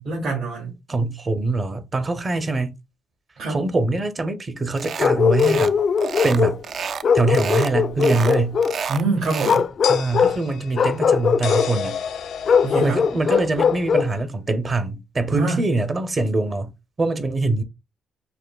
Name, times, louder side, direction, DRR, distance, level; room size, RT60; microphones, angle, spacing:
voice 1, 0.0-0.7 3.4-3.6 8.9-9.6 12.6-13.1 15.3-15.6, right 3 dB, 75° right, 2.2 m, -25 dB
voice 2, 0.9-2.7 3.5-5.7 6.2-6.6 7.1-8.6 9.9-11.9 12.8-16.7 17.0-17.6, right 2 dB, 30° right, 0.7 m, -23 dB
sound 1, 4.8-5.1 5.4-5.7 6.0-7.1 7.3-7.7 8.0-9.6, right 6 dB, 55° right, 0.3 m, -30 dB
Bark, 5.0-6.6 7.0-8.8 9.4-10.4 10.7-11.7 12.5-14.1, left 6 dB, 55° left, 0.4 m, -20 dB
sound 2, 7.9-8.0 9.8-14.2, left 7 dB, 80° left, 0.7 m, -32 dB
6.6 x 2.5 x 2.3 m
cardioid pair, 90°, 0 cm